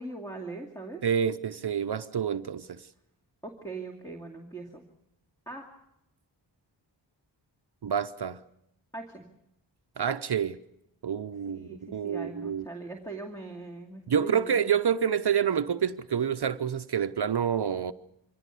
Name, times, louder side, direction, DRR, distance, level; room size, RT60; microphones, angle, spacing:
voice 1, 0.0-1.0 3.4-4.8 5.5-5.6 8.9-9.2 11.5-14.6, right 3 dB, 10° left, 2.5 m, -41 dB
voice 2, 1.0-2.9 7.8-8.4 10.0-10.6 11.0-12.7 14.1-17.9, right 8 dB, 60° right, 0.8 m, -28 dB
24.5 x 17.0 x 8.3 m
wide cardioid pair, 80°, 45 cm